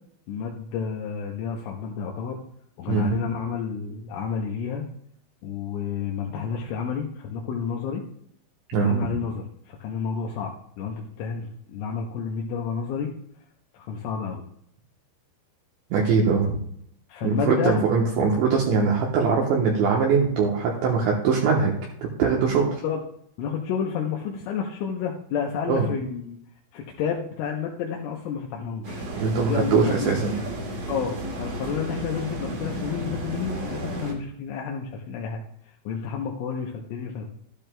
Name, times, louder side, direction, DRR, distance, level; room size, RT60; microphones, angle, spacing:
voice 1, 0.3-2.4 2.8-4.9 5.4-8.0 8.8-13.1 13.7-14.4 17.1-17.8 22.8-23.0 23.4-26.4 26.7-29.0 29.4-30.2 30.9-35.4 35.9-37.3, left 6 dB, 80° left, 0 dB, 3.2 m, -30 dB
voice 2, 8.7-9.1 15.9-16.6 17.2-21.7 22.0-22.8 25.7-25.9 29.2-30.3, right 5 dB, 75° right, -2 dB, 3.0 m, -22 dB
sound 1, 28.8-34.1, right 1 dB, 50° right, 2.8 m, -33 dB
12.5 x 12.0 x 2.2 m, 0.70 s
omnidirectional pair, 5.9 m